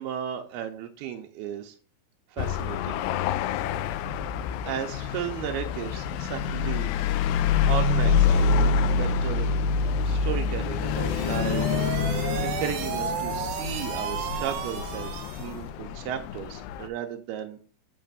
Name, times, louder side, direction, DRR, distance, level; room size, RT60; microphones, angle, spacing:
voice 1, 0.0-1.7 2.3-3.0 4.7-6.9 7.2-7.3 7.6-9.5 10.0-11.7 12.4-17.6, right 10 dB, 85° right, 4 dB, 2.6 m, -35 dB
sound 1, 2.4-16.9, left 5 dB, 85° left, 2.0 m, -26 dB
sound 2, 10.8-15.6, right 7 dB, 70° right, 2.1 m, -33 dB
8.7 x 3.3 x 6.6 m, 0.40 s
omnidirectional pair, 4.5 m